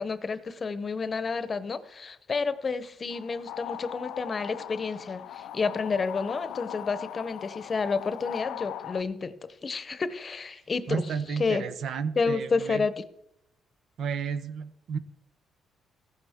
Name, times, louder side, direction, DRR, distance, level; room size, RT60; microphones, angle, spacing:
voice 1, 0.0-11.0 11.4-11.6 12.2-13.0, left 4 dB, 40° left, 0.8 m, -30 dB
sound 1, 3.1-9.0, left 11 dB, 85° left, 0.4 m, -40 dB
voice 2, 10.9-12.9 14.0-15.0, right 6 dB, 70° right, 0.8 m, -32 dB
15.0 x 12.5 x 3.6 m
cardioid pair, 90°, 0 cm